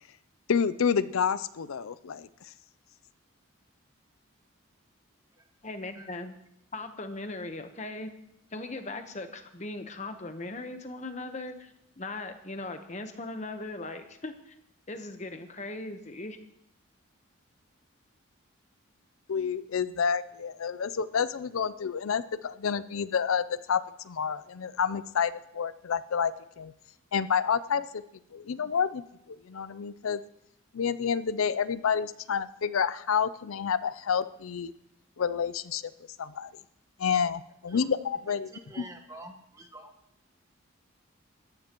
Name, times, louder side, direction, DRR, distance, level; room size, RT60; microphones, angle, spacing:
voice 1, 0.5-2.3 19.3-26.7 27.1-28.0 28.3-29.0 29.3-30.2 30.7-34.7 35.2-35.9 36.2-36.5 37.0-38.5 38.8-38.9, left 6 dB, 80° left, 15 dB, 0.5 m, -29 dB
voice 2, 5.6-6.3 6.7-8.1 8.5-14.6 14.9-16.4, left 2 dB, 35° left, 7 dB, 1.0 m, -39 dB
voice 3, 38.5-39.9, right 1 dB, 15° right, 5 dB, 1.3 m, -47 dB
20.0 x 14.5 x 3.0 m, 0.80 s
head